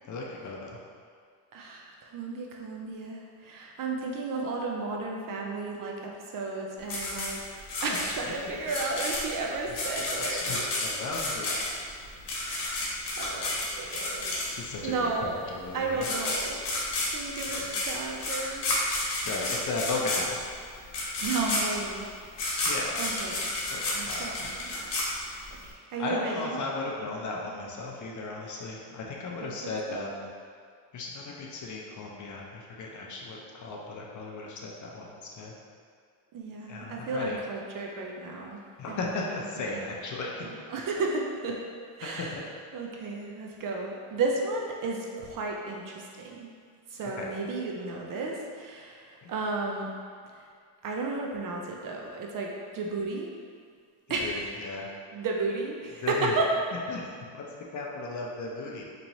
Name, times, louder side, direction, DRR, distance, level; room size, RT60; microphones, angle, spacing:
voice 1, 0.1-0.8 10.3-11.6 14.5-15.1 15.5-16.0 17.5-17.7 19.2-20.4 22.7-23.0 23.7-24.5 26.0-30.3 30.9-35.5 36.7-37.4 38.8-40.5 42.0-42.4 47.2-47.3 49.2-49.3 54.2-54.9 56.0-56.3 56.9-57.1 57.3-57.5 57.7-58.8, left 3 dB, 40° left, -2 dB, 0.6 m, -36 dB
voice 2, 1.5-7.4 7.8-10.6 11.1-11.2 12.4-12.9 13.2-14.5 14.8-15.4 15.7-16.6 17.1-18.6 21.2-22.1 23.0-23.5 23.9-24.9 25.9-26.6 29.4-29.5 29.9-30.0 36.3-38.6 38.9-39.3 39.6-39.8 40.4-41.6 42.0-42.4 42.7-46.5 46.9-49.9 50.8-53.3 54.1-54.5 55.1-56.5, right 3 dB, 45° right, 0 dB, 0.5 m, -33 dB
sound 1, 6.9-14.8 15.7-15.8 16.0-25.7, left 2 dB, 60° left, 1.1 m, -31 dB
4.2 x 3.0 x 2.7 m, 2.1 s
cardioid pair, 115°, 47 cm